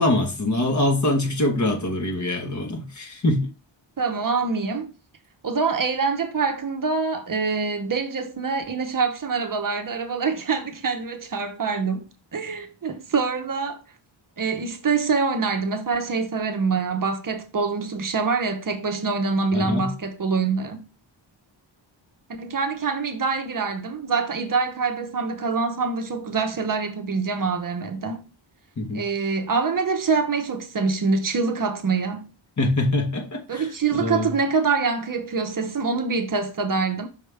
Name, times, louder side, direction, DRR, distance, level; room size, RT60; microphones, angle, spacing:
voice 1, 0.0-3.5 19.5-19.9 28.8-29.0 32.6-33.7 34.0-34.3, left 1 dB, 40° left, 1.3 m, -24 dB
voice 2, 4.0-4.9 5.4-13.8 14.4-20.9 22.4-28.2 28.9-32.3 33.5-37.1, right 4 dB, 45° right, 0.8 m, -25 dB
5.6 x 4.9 x 3.4 m
wide cardioid pair, 145°, 46 cm